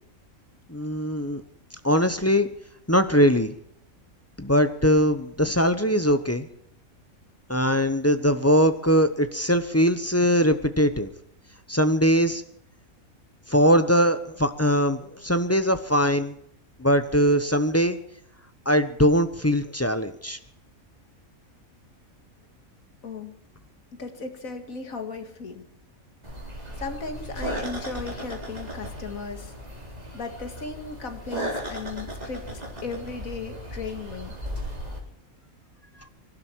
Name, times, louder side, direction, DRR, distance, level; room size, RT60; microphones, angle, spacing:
voice 1, 0.7-1.4 1.8-2.5 2.9-3.5 4.4-6.5 7.5-11.1 11.7-12.4 13.5-16.3 16.8-18.0 18.7-20.4, equal, 15° left, 9 dB, 0.8 m, -21 dB
voice 2, 23.0-23.4 24.0-25.6 26.8-29.5 30.1-34.4, left 4 dB, 75° left, 6 dB, 2.4 m, -36 dB
sound 1, 26.2-35.0, equal, 30° right, 3.9 m, -36 dB
25.0 x 12.0 x 4.6 m, 0.70 s
omnidirectional pair, 1.5 m